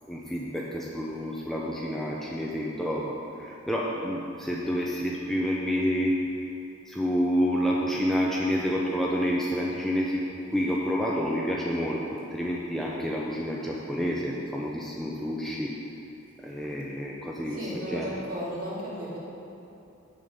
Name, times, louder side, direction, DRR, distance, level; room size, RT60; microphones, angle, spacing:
voice 1, 0.1-6.5 6.9-15.8 16.4-18.1, equal, ahead, -4 dB, 0.5 m, -29 dB
voice 2, 17.5-19.2, equal, 45° right, -6 dB, 2.2 m, -34 dB
8.1 x 6.8 x 5.3 m, 2.8 s
head